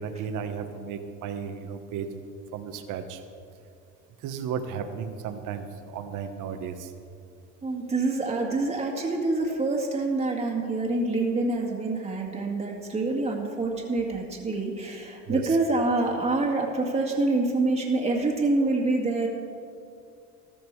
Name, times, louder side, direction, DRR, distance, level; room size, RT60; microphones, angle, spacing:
voice 1, 0.0-2.1 2.5-3.2 4.2-5.7 5.9-6.9 15.3-15.6, right 7 dB, 60° right, 7 dB, 1.4 m, -34 dB
voice 2, 7.6-19.3, right 2 dB, 20° right, -1 dB, 2.0 m, -26 dB
14.0 x 13.0 x 4.8 m, 2.4 s
cardioid pair, 125°, 35 cm